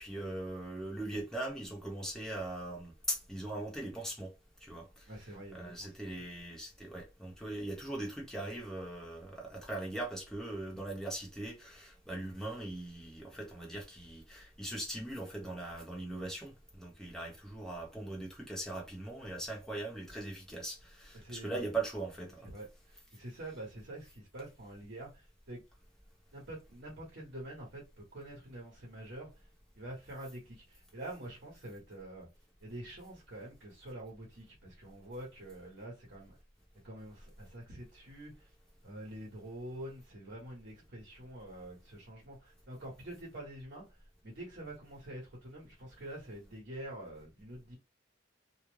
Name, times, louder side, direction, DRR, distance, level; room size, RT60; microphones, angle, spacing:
voice 1, 0.0-4.3 4.6-4.9 5.5-22.4, right 2 dB, 5° left, 0.8 m, -40 dB
voice 2, 5.1-6.2 21.1-21.6 22.4-25.6 26.3-29.5 29.7-32.3 32.6-36.4 36.8-38.5 38.8-47.8, right 1 dB, 60° right, 1.0 m, -46 dB
2.4 x 2.1 x 3.1 m
head